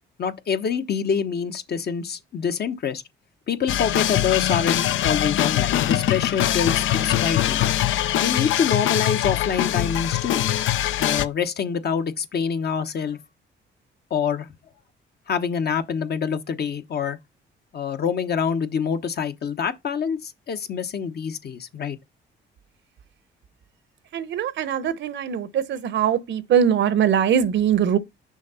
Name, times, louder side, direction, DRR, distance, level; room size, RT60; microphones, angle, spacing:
voice 1, 0.2-3.0 3.5-7.6 8.2-10.4 10.9-13.2 14.1-14.5 15.3-17.2 17.7-22.0, left 7 dB, 55° left, 1.0 m, -26 dB
sound 1, 3.7-11.3, left 12 dB, 80° left, 0.6 m, -22 dB
voice 2, 24.1-28.0, right 8 dB, 65° right, 0.8 m, -21 dB
6.3 x 3.7 x 5.5 m
cardioid pair, 90°, 20 cm